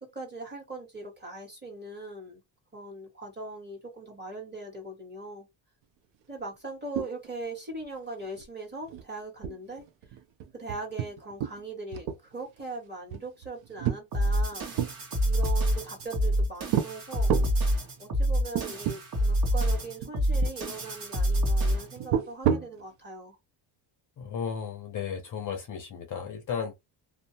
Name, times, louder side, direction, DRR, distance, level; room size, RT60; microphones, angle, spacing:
voice 1, 0.0-2.4 2.7-5.5 6.3-9.8 10.5-14.7 15.2-17.3 18.0-23.4, right 2 dB, 20° right, 1.4 m, -40 dB
sound 1, 7.0-7.5 7.7-7.8 8.2-8.5 8.9-9.0 9.4-11.6 11.9-12.6 13.1-14.9 15.6-16.3 16.7-16.9 17.3-17.6 18.1-18.2 18.5-19.0 19.3-19.4 20.0-20.6 22.0-22.8, right 9 dB, 65° right, 0.6 m, -30 dB
sound 2, 14.1-22.0, equal, 45° right, 1.1 m, -27 dB
voice 2, 24.2-26.8, left 7 dB, 40° left, 0.5 m, -34 dB
2.6 x 2.0 x 2.7 m
cardioid pair, 135°, 50 cm